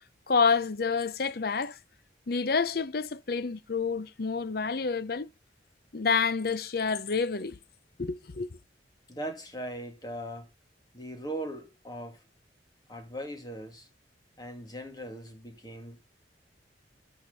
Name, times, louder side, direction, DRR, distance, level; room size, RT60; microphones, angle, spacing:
voice 1, 0.3-1.8 2.3-5.3 5.9-7.6 8.0-8.5, left 5 dB, 55° left, 0.7 m, -28 dB
voice 2, 9.1-10.5 10.9-12.2 12.9-13.9 14.4-16.0, right 1 dB, 20° left, 2.4 m, -39 dB
13.0 x 6.1 x 4.1 m
head